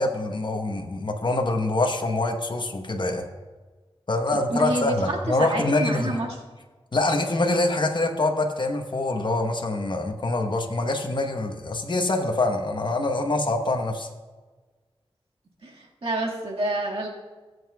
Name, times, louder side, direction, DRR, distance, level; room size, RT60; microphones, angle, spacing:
voice 1, 0.0-3.3 4.1-6.2 6.9-14.1, left 2 dB, 50° left, 3 dB, 1.1 m, -25 dB
voice 2, 4.3-5.0 5.3-6.4 15.6-17.1, right 2 dB, 75° right, -2 dB, 1.9 m, -28 dB
18.5 x 7.9 x 2.3 m, 1.3 s
wide cardioid pair, 55°, 10 cm